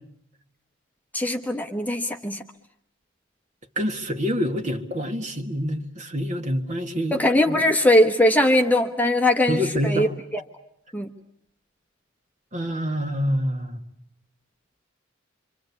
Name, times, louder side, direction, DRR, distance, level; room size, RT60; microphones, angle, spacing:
voice 1, 1.1-2.4 7.1-10.1 10.3-10.4 10.9-11.1, left 1 dB, 10° left, 4 dB, 1.2 m, -20 dB
voice 2, 3.8-7.2 7.5-7.6 9.5-10.1 12.5-13.8, equal, 35° right, 7 dB, 1.9 m, -26 dB
26.5 x 26.0 x 8.4 m, 0.69 s
head